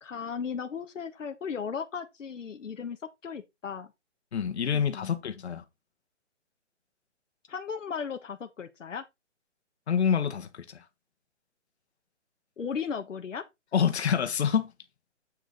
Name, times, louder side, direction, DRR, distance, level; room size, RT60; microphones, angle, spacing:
voice 1, 0.0-3.0 3.2-3.9 4.7-5.1 7.5-9.0 12.6-13.4, left 6 dB, 85° left, 1.3 m, -36 dB
voice 2, 4.3-5.6 9.9-10.8 13.7-14.7, left 7 dB, 60° left, 1.5 m, -27 dB
8.6 x 5.3 x 3.9 m
hypercardioid pair, 155°, 37 cm